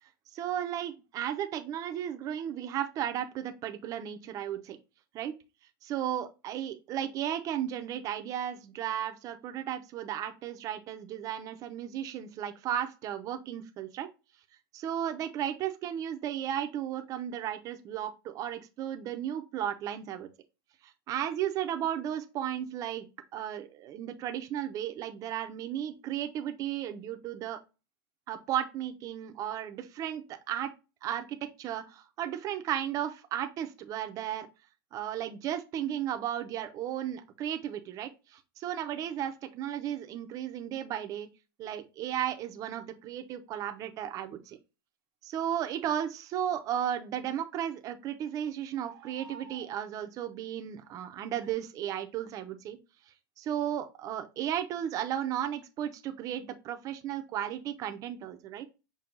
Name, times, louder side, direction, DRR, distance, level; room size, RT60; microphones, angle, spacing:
voice 1, 0.3-4.8 5.1-5.3 5.8-14.1 14.7-20.3 20.8-27.6 28.3-30.7 31.0-34.5 34.9-41.3 41.6-44.6 45.2-52.8 53.4-58.7, right 10 dB, 30° right, 0.6 m, -34 dB
sound 1, 39.0-39.1 42.3-42.4 44.5-44.6 47.2-47.4 48.8-49.8 50.8-51.0 51.4-51.5, right 4 dB, 60° right, 0.9 m, -52 dB
6.0 x 2.3 x 3.7 m
supercardioid pair, 155°, 12 cm